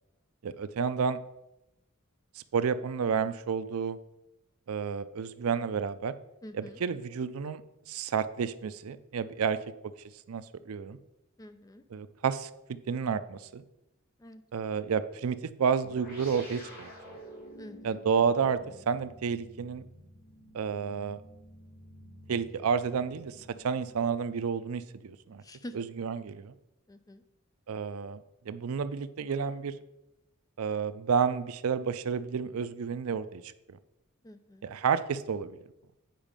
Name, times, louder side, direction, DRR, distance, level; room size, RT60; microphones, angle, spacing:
voice 1, 0.4-1.2 2.4-4.0 4.7-6.1 6.5-7.6 7.9-9.6 10.3-11.0 11.9-13.6 14.5-16.9 17.8-18.6 18.9-19.8 20.5-21.2 22.3-25.4 25.7-26.5 27.7-29.7 30.6-33.8 34.6-35.6, right 6 dB, 80° right, 14 dB, 0.4 m, -30 dB
voice 2, 6.4-6.8 11.4-11.8 14.2-14.4 17.6-18.0 25.4-25.7 26.9-27.2 34.2-34.7, equal, 15° left, 10 dB, 0.5 m, -46 dB
sound 1, 15.8-24.6, equal, 45° left, 2.9 m, -51 dB
9.1 x 4.9 x 5.1 m, 0.91 s
head